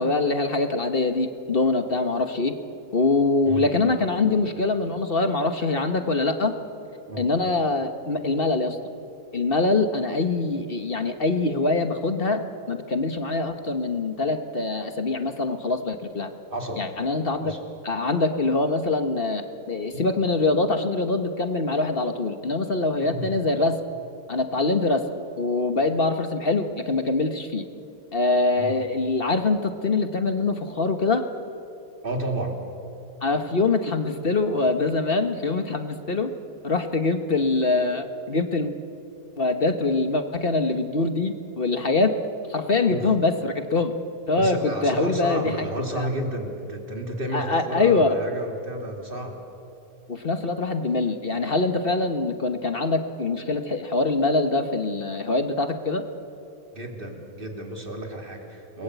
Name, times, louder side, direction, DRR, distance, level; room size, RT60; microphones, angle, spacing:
voice 1, 0.0-2.5 2.9-6.5 7.2-8.8 9.3-16.3 16.8-17.5 17.8-23.8 24.3-25.1 25.4-27.6 28.1-31.2 33.2-36.3 36.6-38.7 39.4-42.1 42.5-43.9 44.3-45.7 45.9-46.1 47.3-48.1 50.1-56.0, left 3 dB, 40° left, 7 dB, 1.4 m, -24 dB
voice 2, 16.5-16.9 17.4-17.6 19.9-20.1 23.0-23.3 28.6-28.7 32.0-32.6 42.9-43.1 44.4-49.4 56.7-58.8, right 1 dB, 35° right, 2 dB, 3.2 m, -31 dB
29.5 x 21.0 x 8.3 m, 2.7 s
omnidirectional pair, 1.6 m